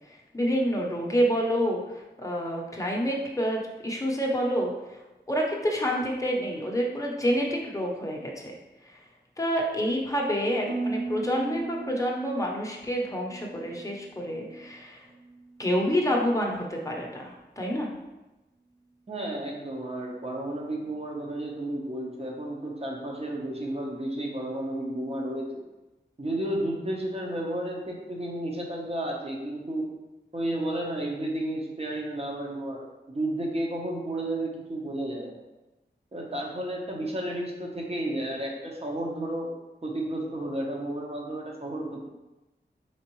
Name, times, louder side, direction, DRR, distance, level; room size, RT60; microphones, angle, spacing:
voice 1, 0.1-4.7 5.3-8.6 8.8-9.0 9.4-15.0 15.6-17.9, equal, 15° left, -1 dB, 0.8 m, -28 dB
Harp, 10.7-14.8 15.1-15.6 16.1-16.5, right 3 dB, 85° right, 0.5 m, -37 dB
voice 2, 19.1-25.6 26.2-29.9 30.3-35.4 36.1-39.5 39.8-42.0, right 1 dB, 35° right, -1 dB, 0.9 m, -32 dB
4.5 x 3.6 x 3.0 m, 1.1 s
wide cardioid pair, 60°, 19 cm